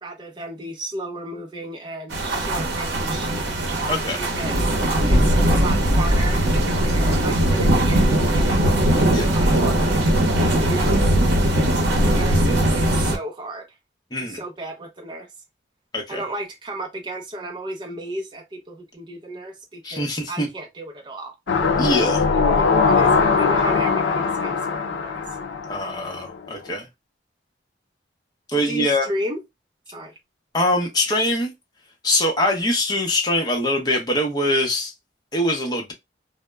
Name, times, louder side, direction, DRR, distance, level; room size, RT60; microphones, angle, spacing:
voice 1, 0.0-3.3 4.2-4.6 5.1-6.4 6.8-8.7 9.2-10.0 10.4-11.2 12.0-13.7 14.2-15.3 16.1-21.3 21.6-21.7 22.3-25.2 28.6-29.4 29.9-30.1, right 1 dB, 25° right, 0.4 m, -33 dB
sound 1, 2.1-13.2, right 1 dB, 70° right, 0.7 m, -19 dB
voice 2, 3.9-4.2 9.1-9.3 14.1-14.4 15.9-16.2 19.8-20.5 21.8-22.2 25.7-26.9 28.5-29.1 30.5-31.5 32.0-34.9 35.3-35.9, left 1 dB, 20° left, 0.6 m, -23 dB
sound 2, 21.5-26.4 26.7-26.8, left 5 dB, 85° left, 0.4 m, -21 dB
2.0 x 2.0 x 3.3 m
head